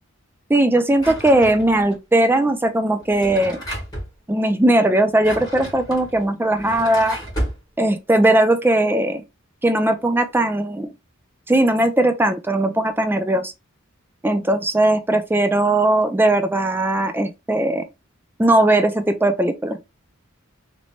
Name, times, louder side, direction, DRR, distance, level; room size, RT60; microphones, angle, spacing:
voice 1, 0.5-3.6 4.3-7.2 7.8-9.2 9.6-10.9 11.5-13.5 14.2-17.8 18.4-19.8, right 1 dB, 10° right, 0.4 m, -18 dB
Drawer open or close, 1.0-1.9 3.0-4.1 5.0-7.6, right 1 dB, 20° left, 1.7 m, -32 dB
3.1 x 3.0 x 4.2 m
head